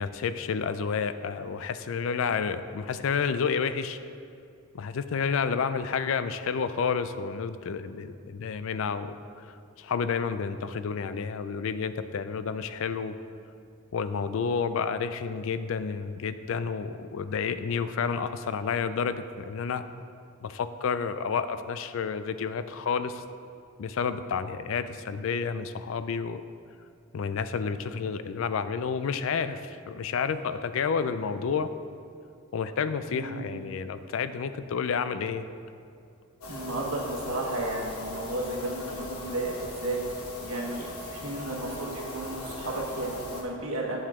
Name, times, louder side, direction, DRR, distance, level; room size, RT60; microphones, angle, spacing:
voice 1, 0.0-4.0 4.7-9.1 9.8-13.1 13.9-19.8 20.4-23.2 23.8-26.4 27.1-31.7 32.5-35.5, left 6 dB, 65° left, 12 dB, 0.3 m, -30 dB
voice 2, 33.1-33.6 36.5-40.0 40.4-44.0, right 2 dB, 75° right, -1 dB, 1.3 m, -33 dB
sound 1, 36.4-43.4, left 1 dB, 80° left, 1.1 m, -39 dB
8.7 x 7.4 x 3.6 m, 2.5 s
head